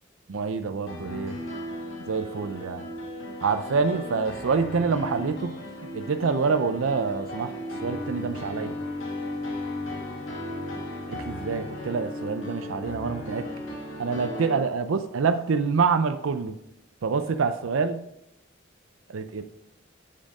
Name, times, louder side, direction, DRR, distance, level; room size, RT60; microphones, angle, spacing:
voice 1, 0.3-1.4 2.1-2.9 3.4-5.6 5.9-7.5 7.8-8.7 11.1-13.5 14.0-16.6 17.0-18.0 19.1-19.4, right 5 dB, 85° right, 9 dB, 0.5 m, -26 dB
sound 1, 0.9-14.6, left 1 dB, 80° left, 1.8 m, -36 dB
7.5 x 7.1 x 5.3 m, 0.80 s
head